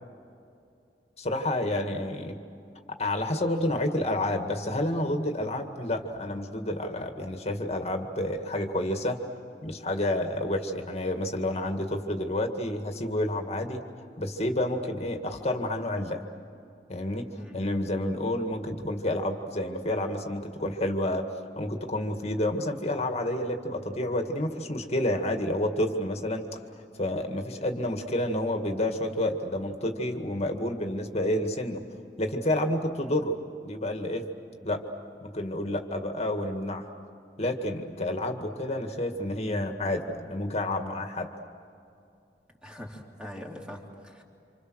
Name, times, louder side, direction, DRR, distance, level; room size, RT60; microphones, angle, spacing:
voice 1, 1.2-2.4 2.9-9.2 9.6-13.8 14.2-16.2 16.9-21.3 21.6-26.6 27.0-31.8 32.2-34.3 34.6-34.9 35.2-36.9 37.4-41.3, left 1 dB, 40° left, 5 dB, 2.0 m, -29 dB
voice 2, 42.6-44.2, equal, 5° right, -1 dB, 3.2 m, -42 dB
29.0 x 27.0 x 6.4 m, 2.5 s
head